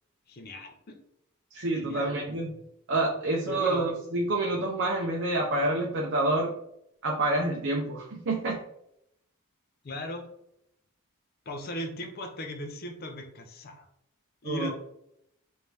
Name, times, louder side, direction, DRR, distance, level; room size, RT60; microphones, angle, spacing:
voice 1, 0.3-1.0 1.8-2.1 3.5-3.9 9.8-10.3 11.5-13.9 14.4-14.7, left 1 dB, 45° left, 4 dB, 0.5 m, -37 dB
voice 2, 1.5-2.6 2.9-6.5 7.0-8.6 14.4-14.7, right 2 dB, 55° right, -1 dB, 0.5 m, -28 dB
3.3 x 2.6 x 3.2 m, 0.77 s
head